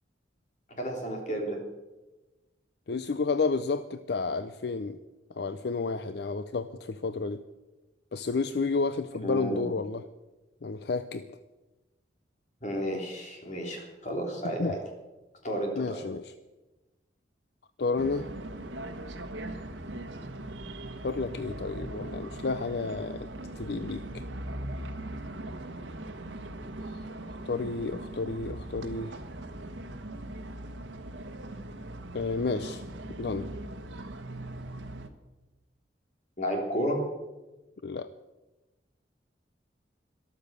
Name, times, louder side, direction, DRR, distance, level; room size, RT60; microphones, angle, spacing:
voice 1, 0.8-1.6 9.2-9.6 12.6-14.8 15.4-16.0 36.4-37.0, equal, 40° left, 1 dB, 3.4 m, -32 dB
voice 2, 2.9-5.0 5.4-7.4 8.1-10.0 10.6-11.2 14.6-14.7 15.8-16.3 17.8-18.3 21.0-23.3 23.6-24.2 27.5-29.2 32.1-32.8 33.2-33.5 37.8-38.1, left 4 dB, 60° left, 11 dB, 0.5 m, -31 dB
sound 1, 18.0-35.1, right 1 dB, 85° right, 1.3 m, -40 dB
13.5 x 13.0 x 6.7 m, 1.1 s
head